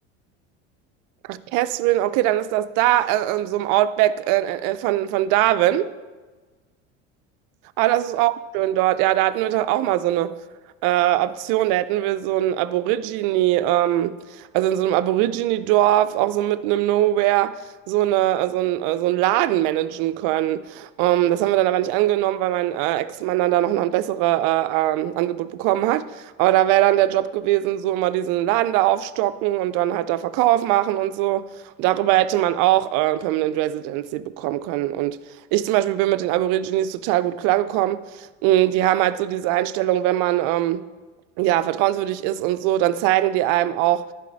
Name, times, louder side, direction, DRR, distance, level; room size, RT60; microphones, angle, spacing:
voice 1, 1.3-5.9 7.8-10.4 10.8-17.6 17.9-31.5 31.8-35.2 35.5-40.8 41.4-44.1, right 14 dB, 65° right, 0.5 m, -21 dB
10.5 x 4.2 x 3.9 m
supercardioid pair, 95°, 35 cm